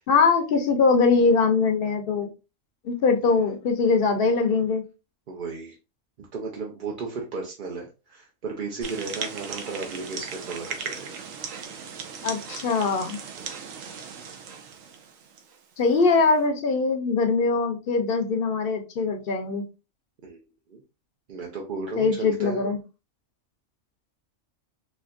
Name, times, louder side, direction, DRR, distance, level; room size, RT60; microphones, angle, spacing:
voice 1, 0.1-2.3 2.8-4.8 12.2-13.2 15.8-19.6 22.0-22.8, left 4 dB, 55° left, 0.7 m, -22 dB
voice 2, 5.3-5.8 6.2-11.2 13.4-13.7 20.2-20.4 20.7-20.8 21.3-22.6, right 4 dB, 50° right, 0.6 m, -35 dB
sound 1, 8.8-15.6, right 6 dB, 75° right, 1.0 m, -37 dB
4.2 x 2.9 x 2.5 m
omnidirectional pair, 1.4 m